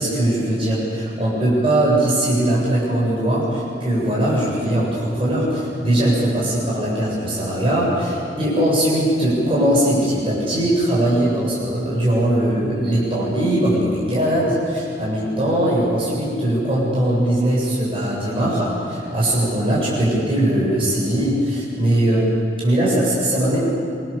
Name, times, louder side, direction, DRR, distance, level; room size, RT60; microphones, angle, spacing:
voice 1, 0.0-22.3 22.6-23.6, right 1 dB, 30° right, -6 dB, 7.9 m, -20 dB
27.5 x 24.5 x 7.1 m, 2.5 s
head